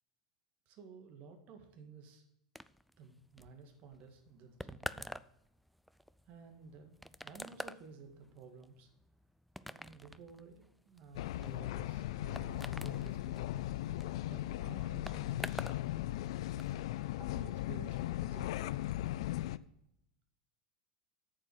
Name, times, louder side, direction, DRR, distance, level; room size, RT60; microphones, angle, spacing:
voice 1, 0.7-2.3 3.0-5.1 6.3-8.9 9.6-13.7 14.2-15.6 17.1-18.7, right 5 dB, 50° right, 5 dB, 2.0 m, -54 dB
sound 1, 2.5-15.8 16.1-16.7, equal, ahead, 0.3 m, -48 dB
sound 2, 11.1-19.6, left 15 dB, 70° left, 0.4 m, -38 dB
8.8 x 7.3 x 6.2 m, 0.79 s
hypercardioid pair, 90°, 3 cm